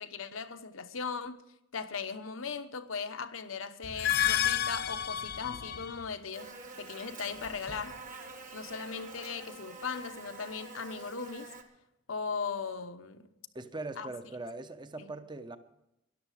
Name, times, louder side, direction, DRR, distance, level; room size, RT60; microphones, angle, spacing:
voice 1, 0.0-1.4 1.7-8.0 8.5-11.5 12.1-13.3 14.0-14.1 15.0-15.1, left 5 dB, 70° left, 0.9 m, -38 dB
sound 1, 3.8-6.1, left 11 dB, 50° left, 0.5 m, -30 dB
Buzz, 6.3-11.6, right 3 dB, 40° right, 1.6 m, -47 dB
voice 2, 13.5-15.6, right 2 dB, 20° right, 0.8 m, -41 dB
13.0 x 11.0 x 6.5 m
head